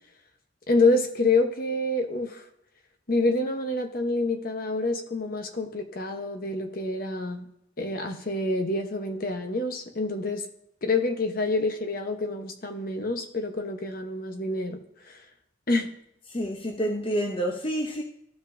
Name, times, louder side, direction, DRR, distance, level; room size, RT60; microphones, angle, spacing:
voice 1, 0.7-2.4 3.1-7.5 7.8-10.4 10.8-14.8 15.1-15.2 15.7-15.9, left 2 dB, 50° left, 1.0 m, -27 dB
voice 2, 16.3-18.0, equal, 30° left, 0.7 m, -28 dB
14.5 x 5.1 x 2.7 m
head